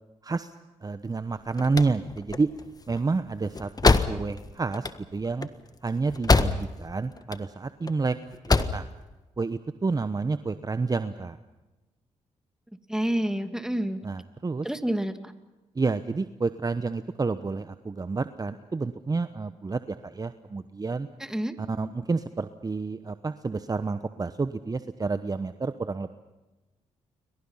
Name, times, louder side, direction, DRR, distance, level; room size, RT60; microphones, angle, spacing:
voice 1, 0.8-2.5 2.9-4.9 5.1-5.5 5.8-8.2 8.5-8.8 9.4-11.4 14.0-14.7 15.8-21.1 21.6-26.2, right 4 dB, 30° right, 11 dB, 1.1 m, -29 dB
sound 1, 1.3-6.9 7.2-7.9 8.3-8.9, left 3 dB, 30° left, 1.5 m, -25 dB
voice 2, 12.9-14.0 14.6-15.2 21.2-21.5, right 1 dB, 5° right, 8 dB, 2.5 m, -28 dB
29.5 x 24.0 x 5.7 m, 1.1 s
supercardioid pair, 60°, 13 cm